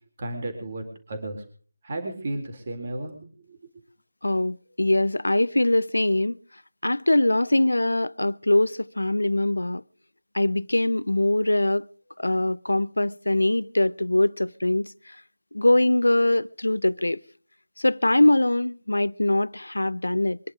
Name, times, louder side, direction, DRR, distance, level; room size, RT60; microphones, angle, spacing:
voice 1, 0.2-1.4 1.8-3.2 3.5-3.7, right 1 dB, 40° right, 3.8 m, -33 dB
voice 2, 4.2-6.4 6.8-9.8 10.3-11.9 12.2-14.9 15.5-17.2 17.8-20.4, left 1 dB, 80° left, 0.7 m, -22 dB
24.0 x 11.0 x 5.0 m
figure-of-eight pair, 160°, 0 cm